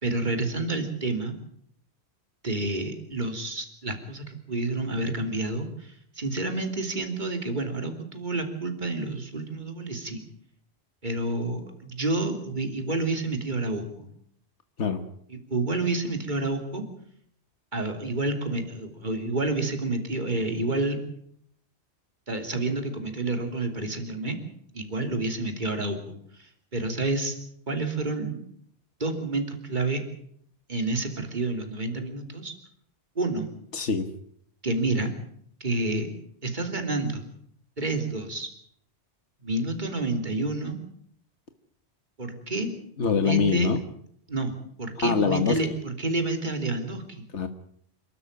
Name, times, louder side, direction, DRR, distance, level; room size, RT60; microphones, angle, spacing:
voice 1, 0.0-1.3 2.4-10.2 11.0-14.1 15.5-16.8 17.7-21.0 22.3-24.4 24.7-27.4 27.7-28.4 29.0-30.0 30.7-32.5 33.1-33.5 34.6-35.1 35.6-36.1 36.4-37.3 37.8-38.5 39.4-40.8 42.2-42.7 43.1-43.7 44.3-47.2, right 2 dB, 45° right, 6 dB, 3.3 m, -29 dB
voice 2, 33.7-34.1 43.0-43.8 45.0-45.6 47.3-47.5, left 6 dB, 90° left, 8 dB, 1.7 m, -24 dB
28.5 x 12.5 x 8.7 m, 0.67 s
omnidirectional pair, 1.2 m